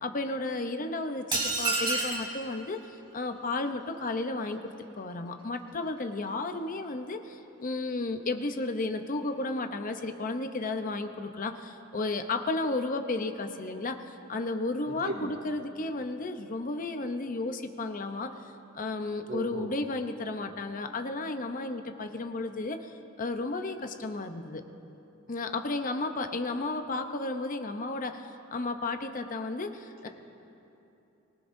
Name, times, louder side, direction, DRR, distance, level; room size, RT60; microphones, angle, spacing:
voice 1, 0.0-2.8 3.1-18.3 18.7-22.9 23.2-24.6 25.3-30.1, left 2 dB, 40° left, 7 dB, 0.7 m, -33 dB
sound 1, 1.3-2.3, right 3 dB, 25° right, 2.6 m, -28 dB
voice 2, 19.3-19.7, right 2 dB, 70° right, -3 dB, 3.4 m, -35 dB
24.5 x 18.5 x 2.7 m, 2.9 s
head